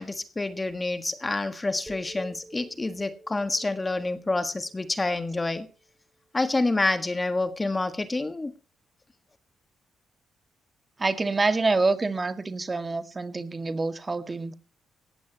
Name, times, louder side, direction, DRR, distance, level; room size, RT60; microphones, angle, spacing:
voice 1, 0.0-5.7 6.3-8.5, left 2 dB, 20° left, 1.6 m, -28 dB
sound 1, 1.9-5.9, right 2 dB, 10° right, 3.9 m, -49 dB
voice 2, 11.0-14.5, right 3 dB, 30° right, 2.0 m, -26 dB
18.5 x 15.0 x 3.0 m
cardioid pair, 75°, 0 cm